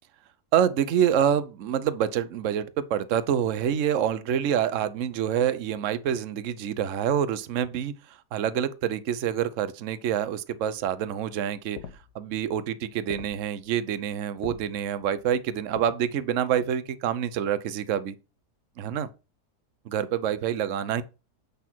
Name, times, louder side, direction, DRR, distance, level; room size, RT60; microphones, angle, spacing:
voice 1, 0.5-11.8 12.1-18.2 18.8-19.1 19.8-21.0, right 9 dB, 55° right, 1.0 m, -27 dB
sound 1, 10.8-15.8, left 9 dB, 80° left, 1.5 m, -45 dB
8.3 x 6.0 x 4.5 m
omnidirectional pair, 1.8 m